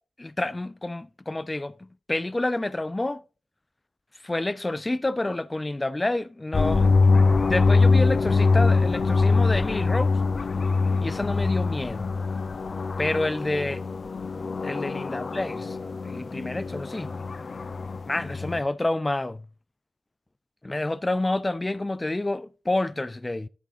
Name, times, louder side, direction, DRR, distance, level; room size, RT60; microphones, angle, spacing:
voice 1, 0.2-1.8 2.1-3.2 4.2-6.9 7.5-10.2 11.0-12.1 13.0-13.8 14.6-15.8 16.0-17.2 18.1-19.4 20.6-23.5, left 2 dB, 25° left, 0.5 m, -28 dB
sound 1, 6.5-18.6, left 4 dB, 50° left, 0.8 m, -23 dB
12.5 x 6.0 x 2.7 m
cardioid pair, 60°, 0 cm